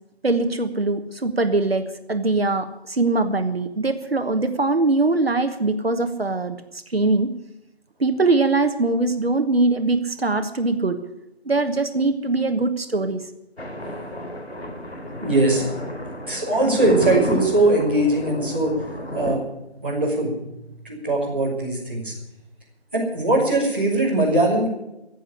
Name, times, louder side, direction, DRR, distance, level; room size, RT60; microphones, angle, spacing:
voice 1, 0.2-6.6 6.9-7.3 8.0-11.0 11.4-13.2, right 3 dB, 65° right, 8 dB, 1.3 m, -22 dB
Thunder, 13.6-19.3, equal, 75° left, 3.7 m, -30 dB
voice 2, 15.2-15.6 16.3-18.7 19.1-19.4 19.8-20.3 20.8-22.1 22.9-24.7, right 2 dB, 10° right, -10 dB, 2.4 m, -20 dB
14.5 x 8.2 x 10.0 m, 0.91 s
figure-of-eight pair, 180°, 32 cm